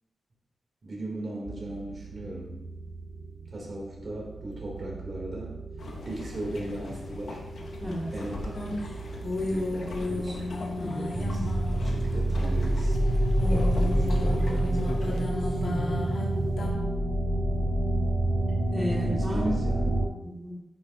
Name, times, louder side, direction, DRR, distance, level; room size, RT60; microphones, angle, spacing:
voice 1, 0.8-2.5 3.5-5.6 6.0-7.4 8.1-8.7 9.5-10.5 11.0-11.5 11.8-12.9 13.5-15.3 18.9-20.2, right 1 dB, 50° right, -3 dB, 3.5 m, -38 dB
sound 1, 1.5-20.0, right 1 dB, 25° right, 1.7 m, -29 dB
sound 2, 5.8-15.2, left 2 dB, 80° left, 1.4 m, -41 dB
voice 2, 7.8-8.1 10.8-11.1 15.6-16.1 18.7-19.6 20.2-20.6, equal, 5° left, -6 dB, 2.6 m, -33 dB
sound 3, 8.5-12.5 12.8-16.7, left 2 dB, 60° left, 2.5 m, -33 dB
10.5 x 10.5 x 3.0 m, 0.95 s
wide cardioid pair, 130°, 0 cm